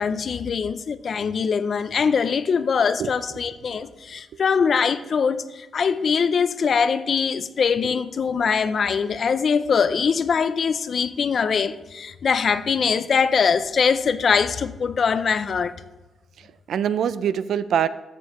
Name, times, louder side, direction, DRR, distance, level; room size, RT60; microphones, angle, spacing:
voice 1, 0.0-15.7, left 6 dB, 55° left, 0.4 m, -22 dB
voice 2, 3.0-3.4 3.6-3.9 4.3-4.4 16.4-17.9, right 9 dB, 80° right, 0.4 m, -25 dB
13.5 x 6.9 x 3.0 m
cardioid pair, 95°, 0 cm